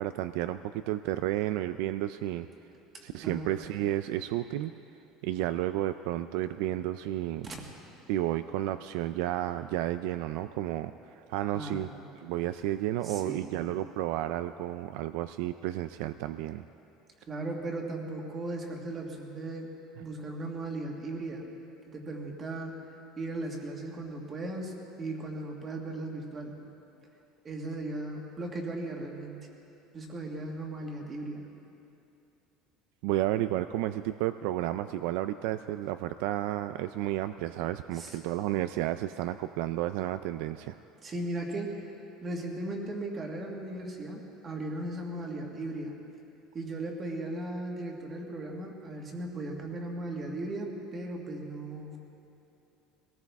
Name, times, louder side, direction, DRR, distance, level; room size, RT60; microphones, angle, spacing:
voice 1, 0.0-2.5 3.0-4.7 5.2-7.5 8.1-11.9 12.2-16.6 33.0-40.8, right 14 dB, 65° right, 11 dB, 0.3 m, -32 dB
voice 2, 2.9-3.5 7.4-7.6 11.5-12.0 13.0-13.6 17.3-19.7 20.0-21.4 21.9-22.7 23.2-26.6 27.4-29.4 29.9-31.5 37.9-38.2 41.0-41.9 42.2-45.9 46.5-52.0, right 2 dB, 20° right, 1 dB, 1.7 m, -37 dB
22.0 x 18.5 x 3.5 m, 2.8 s
cardioid pair, 180°, 0 cm